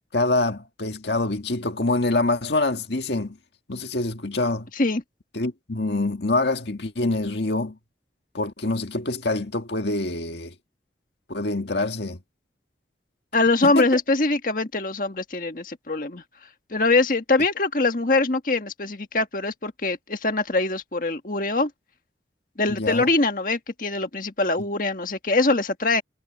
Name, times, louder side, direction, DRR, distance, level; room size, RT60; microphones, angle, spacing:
voice 1, 0.1-3.4 3.7-4.7 5.3-7.8 8.3-10.5 11.3-12.2 13.6-13.9 22.7-23.1 24.6-24.7, left 2 dB, 75° left, 1.7 m, -25 dB
voice 2, 13.3-16.2 16.7-21.7 22.6-26.0, left 3 dB, 50° left, 1.6 m, -23 dB
head